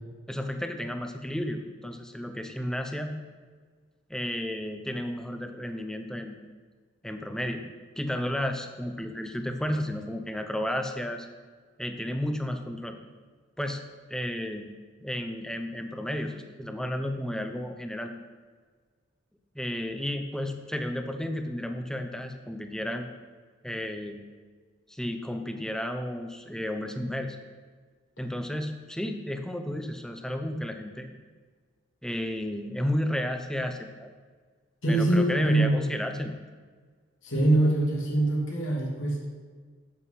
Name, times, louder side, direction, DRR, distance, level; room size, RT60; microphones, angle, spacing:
voice 1, 0.3-3.1 4.1-6.4 7.0-7.6 8.0-11.3 11.8-13.0 13.6-13.8 14.1-14.7 15.0-18.1 19.5-23.1 23.6-24.2 24.9-27.4 28.2-31.1 32.0-34.1 34.9-36.4, left 1 dB, 5° left, 5 dB, 0.7 m, -32 dB
voice 2, 34.8-35.7 37.2-39.3, right 2 dB, 80° left, -4 dB, 2.9 m, -23 dB
9.9 x 8.2 x 5.7 m, 1.5 s
head